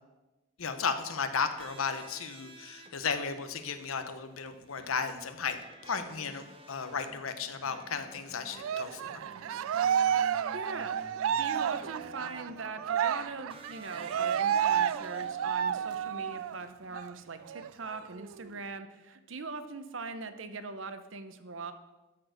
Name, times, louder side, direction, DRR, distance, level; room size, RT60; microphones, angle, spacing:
voice 1, 0.6-9.2, left 5 dB, 85° left, 9 dB, 0.9 m, -34 dB
sound 1, 1.2-16.4, right 1 dB, 25° right, 0.9 m, -53 dB
Cheering, 8.6-16.6 16.9-17.1 17.5-18.5, right 9 dB, 80° right, 0.3 m, -31 dB
voice 2, 10.5-11.0 11.4-21.7, right 4 dB, 65° right, 10 dB, 0.8 m, -41 dB
12.5 x 4.6 x 6.3 m, 1.1 s
head